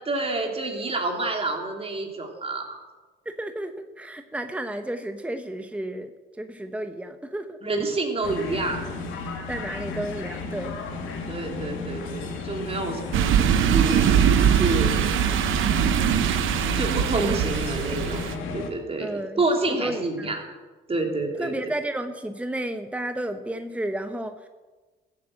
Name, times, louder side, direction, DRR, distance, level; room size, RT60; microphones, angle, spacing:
voice 1, 0.0-2.8 7.6-8.9 11.3-14.1 14.5-15.0 16.7-18.3 18.5-20.4 20.9-21.6, right 2 dB, 30° right, 2 dB, 3.1 m, -28 dB
voice 2, 3.2-6.1 6.4-7.6 9.5-10.7 19.0-19.4 19.8-20.4 21.4-24.5, right 1 dB, 5° right, 7 dB, 0.9 m, -32 dB
sound 1, 8.2-18.7, left 4 dB, 85° left, 2.3 m, -33 dB
sound 2, 13.1-18.3, right 9 dB, 80° right, 0.9 m, -22 dB
14.5 x 8.4 x 7.7 m, 1.3 s
cardioid pair, 90°, 20 cm